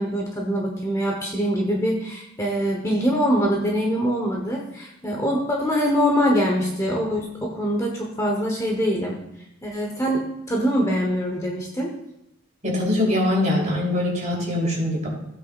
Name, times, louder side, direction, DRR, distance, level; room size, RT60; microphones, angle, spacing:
voice 1, 0.0-9.2 9.6-11.9, equal, 15° left, -1 dB, 1.2 m, -24 dB
voice 2, 12.6-15.1, left 1 dB, 35° right, -3 dB, 3.4 m, -22 dB
15.5 x 8.3 x 2.5 m, 0.84 s
head